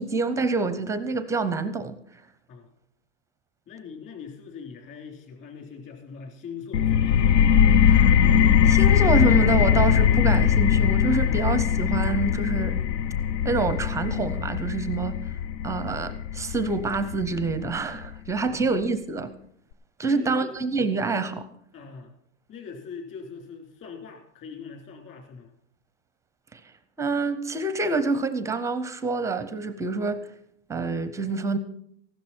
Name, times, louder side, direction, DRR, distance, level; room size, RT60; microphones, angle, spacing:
voice 1, 0.0-2.0 7.9-8.1 8.6-12.8 13.4-15.2 15.6-19.3 20.0-21.5 26.5-26.6 27.0-30.3 30.7-31.6, right 3 dB, 10° right, 0.5 m, -27 dB
voice 2, 3.7-7.4 11.2-11.5 18.5-18.7 20.1-20.5 21.7-22.1 22.5-25.5, left 5 dB, 35° left, 3.8 m, -42 dB
sound 1, 6.7-18.1, left 8 dB, 90° left, 0.8 m, -21 dB
15.0 x 12.0 x 4.4 m
supercardioid pair, 150°, 36 cm